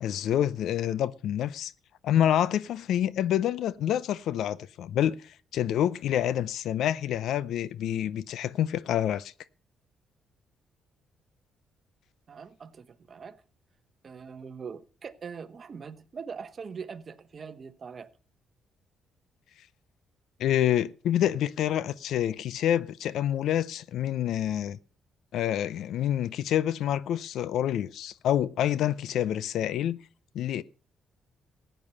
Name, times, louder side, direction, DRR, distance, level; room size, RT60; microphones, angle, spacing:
voice 1, 0.0-1.7 2.0-9.3 20.4-24.8 25.3-30.0 30.3-30.6, left 11 dB, 75° left, 0.5 m, -27 dB
voice 2, 12.3-13.4 14.0-18.1, right 6 dB, 45° right, 1.0 m, -42 dB
15.0 x 9.2 x 5.4 m
cardioid pair, 90°, 0 cm